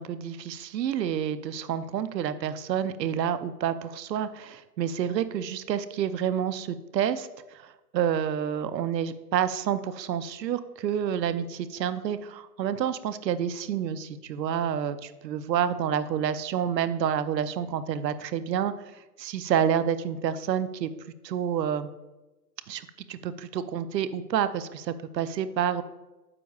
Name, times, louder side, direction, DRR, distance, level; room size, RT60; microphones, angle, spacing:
voice 1, 0.0-18.7 19.2-20.9 21.2-21.9 22.7-25.8, right 9 dB, 80° right, 13 dB, 0.7 m, -29 dB
9.7 x 6.8 x 2.3 m, 1.1 s
hypercardioid pair, 160°, 49 cm